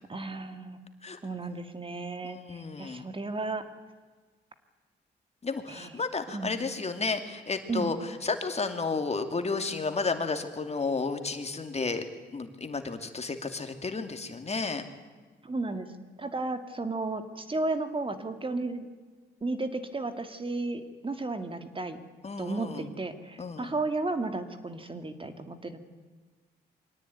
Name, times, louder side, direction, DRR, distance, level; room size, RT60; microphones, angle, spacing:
voice 1, 0.1-0.8 1.2-3.6 5.7-5.9 6.3-6.6 7.7-7.9 15.4-15.9 16.2-18.9 19.4-22.0 22.4-25.8, right 3 dB, 30° right, 8 dB, 2.2 m, -33 dB
voice 2, 2.2-3.1 5.4-12.1 12.3-14.8 22.2-22.9 23.4-23.7, left 4 dB, 35° left, 7 dB, 2.5 m, -32 dB
24.0 x 18.0 x 9.5 m, 1.4 s
cardioid pair, 65°, 18 cm